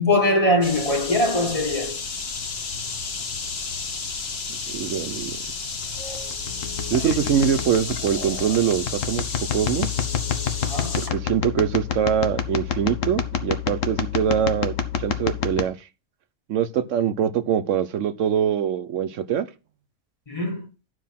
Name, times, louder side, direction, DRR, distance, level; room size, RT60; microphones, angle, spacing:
voice 1, 0.0-2.0 6.9-7.1 10.6-11.1 20.3-20.6, left 1 dB, 30° left, 1.5 m, -22 dB
sound 1, 0.6-11.1, left 4 dB, 55° left, 1.3 m, -32 dB
voice 2, 4.7-5.3 6.9-9.2 9.5-9.9 11.0-15.8 16.5-19.5, right 8 dB, 80° right, 1.1 m, -23 dB
sound 2, 5.8-15.6, left 8 dB, 85° left, 1.3 m, -28 dB
10.5 x 5.0 x 5.8 m
omnidirectional pair, 1.3 m